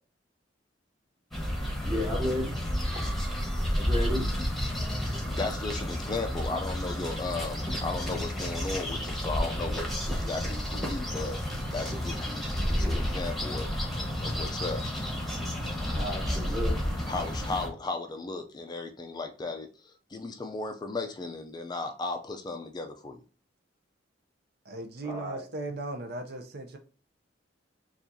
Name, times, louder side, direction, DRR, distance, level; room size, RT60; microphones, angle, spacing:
sound 1, 1.3-17.7, equal, ahead, 1.1 m, -31 dB
voice 1, 1.8-2.5 3.7-4.2 12.6-13.1 15.8-16.7 25.0-25.4, left 1 dB, 25° right, 1.5 m, -33 dB
voice 2, 5.1-11.4 11.7-13.7 14.2-14.8 17.1-23.2, left 3 dB, 25° left, 0.4 m, -36 dB
voice 3, 24.7-26.8, right 2 dB, 60° right, 0.6 m, -37 dB
7.0 x 2.4 x 2.6 m
head